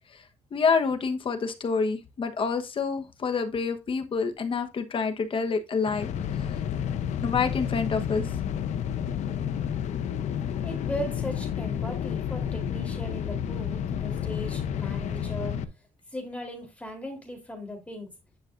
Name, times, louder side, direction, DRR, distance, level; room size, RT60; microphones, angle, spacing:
voice 1, 0.5-6.1 7.2-8.2, left 5 dB, 45° left, 1.2 m, -27 dB
sound 1, 5.8-15.6, left 8 dB, 80° left, 0.8 m, -30 dB
voice 2, 10.6-15.5 16.1-18.1, left 1 dB, 10° left, 3.6 m, -37 dB
10.5 x 5.8 x 2.6 m
cardioid pair, 100°, 12 cm